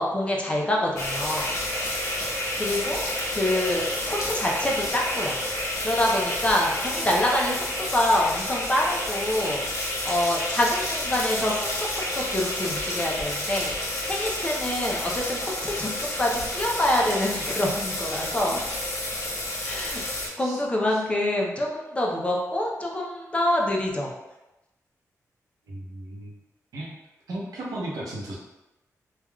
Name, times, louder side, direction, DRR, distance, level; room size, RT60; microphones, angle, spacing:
voice 1, 0.0-1.5 2.6-3.0 3.3-5.4 5.8-9.6 10.0-18.6 19.6-24.1, left 1 dB, 20° left, -1 dB, 0.5 m, -26 dB
sound 1, 1.0-20.3, left 1 dB, 60° left, 0.9 m, -30 dB
voice 2, 25.7-26.4 26.7-26.9 27.3-28.4, right 1 dB, 85° right, -4 dB, 0.7 m, -35 dB
3.3 x 2.3 x 2.2 m, 0.98 s
wide cardioid pair, 105°, 6 cm